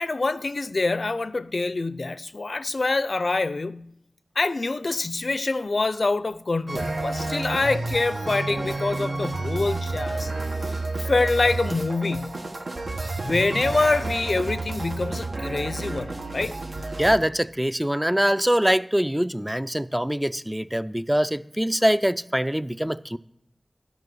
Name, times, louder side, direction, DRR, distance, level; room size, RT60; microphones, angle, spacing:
voice 1, 0.0-3.9 4.4-10.3 10.7-10.8 11.1-12.5 13.2-16.6, left 3 dB, 70° left, 0.4 m, -25 dB
sound 1, 6.7-17.2, right 2 dB, 70° right, 1.1 m, -30 dB
voice 2, 17.0-23.2, equal, 10° right, 0.4 m, -23 dB
12.0 x 5.7 x 6.2 m
wide cardioid pair, 60°, 0 cm